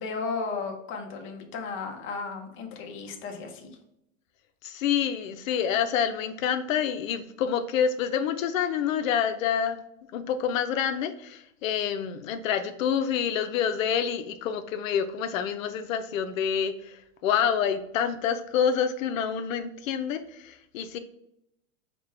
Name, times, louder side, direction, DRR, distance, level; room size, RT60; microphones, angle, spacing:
voice 1, 0.0-3.8, left 4 dB, 30° left, 3 dB, 0.7 m, -34 dB
voice 2, 4.6-9.8 10.1-21.0, left 8 dB, 90° left, 9 dB, 0.5 m, -27 dB
5.2 x 2.2 x 3.2 m, 0.80 s
supercardioid pair, 130°, 39 cm